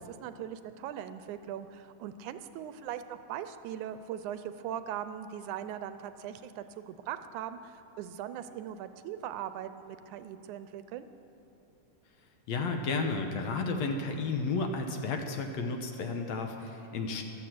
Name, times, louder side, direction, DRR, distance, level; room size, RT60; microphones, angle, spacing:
voice 1, 0.0-11.1, right 10 dB, 80° right, 11 dB, 2.0 m, -40 dB
voice 2, 12.5-17.2, left 3 dB, 65° left, 4 dB, 2.1 m, -32 dB
15.0 x 12.5 x 7.8 m, 2.7 s
omnidirectional pair, 3.6 m